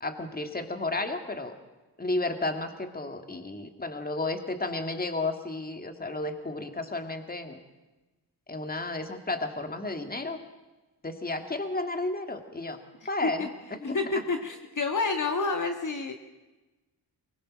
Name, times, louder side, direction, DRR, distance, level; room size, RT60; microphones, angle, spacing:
voice 1, 0.0-1.6 2.0-7.6 8.5-10.4 11.0-12.8 13.1-14.0, left 2 dB, 20° left, 6 dB, 2.0 m, -32 dB
voice 2, 13.8-16.1, left 3 dB, 45° left, 4 dB, 1.6 m, -29 dB
23.5 x 21.0 x 6.3 m, 1.1 s
wide cardioid pair, 105°, 42 cm